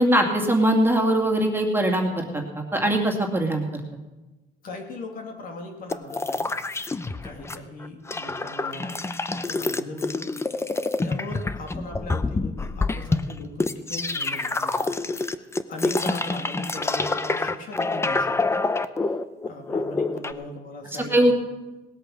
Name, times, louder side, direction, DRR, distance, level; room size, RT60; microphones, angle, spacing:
voice 1, 0.0-2.4 2.7-3.8 21.1-21.3, right 1 dB, 15° right, 1 dB, 2.3 m, -21 dB
voice 2, 4.6-6.5 7.2-9.0 9.3-10.3 11.0-15.4 15.7-18.6 19.4-21.3, left 2 dB, 55° left, 2 dB, 2.5 m, -38 dB
sound 1, 5.9-7.6 7.8-20.3, left 3 dB, 15° left, 0.7 m, -27 dB
18.5 x 8.5 x 6.3 m, 1.1 s
cardioid pair, 110°, 17 cm